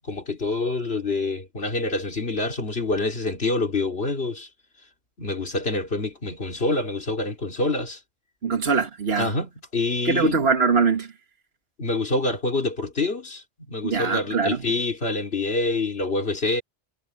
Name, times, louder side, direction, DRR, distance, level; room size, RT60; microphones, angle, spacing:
voice 1, 0.1-4.5 5.2-8.0 9.2-10.4 11.8-16.6, left 2 dB, 80° left, 3.4 m, -26 dB
voice 2, 8.4-9.3 10.0-11.1 13.8-14.7, right 4 dB, 75° right, 1.9 m, -22 dB
omnidirectional pair, 1.0 m